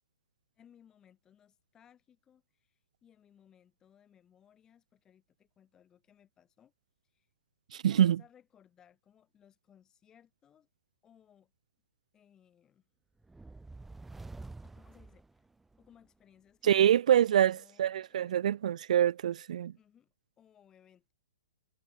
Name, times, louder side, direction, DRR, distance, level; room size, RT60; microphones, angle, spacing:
voice 1, 0.6-6.7 7.1-7.3 7.8-10.7 11.0-11.5 12.1-12.9 14.6-15.4 15.8-18.6 19.7-21.1, left 9 dB, 15° left, 7.4 m, -63 dB
voice 2, 7.7-8.2 16.6-19.7, right 10 dB, 60° right, 0.4 m, -25 dB
sound 1, 13.2-15.9, right 3 dB, 5° right, 1.9 m, -48 dB
hypercardioid pair, 160°, 4 cm